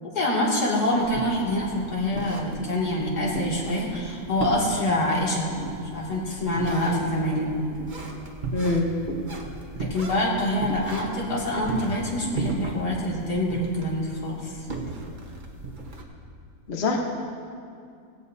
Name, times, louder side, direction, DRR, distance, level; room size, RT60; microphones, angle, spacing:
voice 1, 0.0-5.6 5.9-7.5 9.8-14.6, left 1 dB, 70° left, -5 dB, 2.9 m, -26 dB
sound 1, 0.9-16.0, right 2 dB, 30° right, 1.2 m, -36 dB
voice 2, 8.5-8.9 16.7-17.0, left 3 dB, 45° left, 1 dB, 1.2 m, -23 dB
16.5 x 16.5 x 2.7 m, 2.4 s
omnidirectional pair, 1.8 m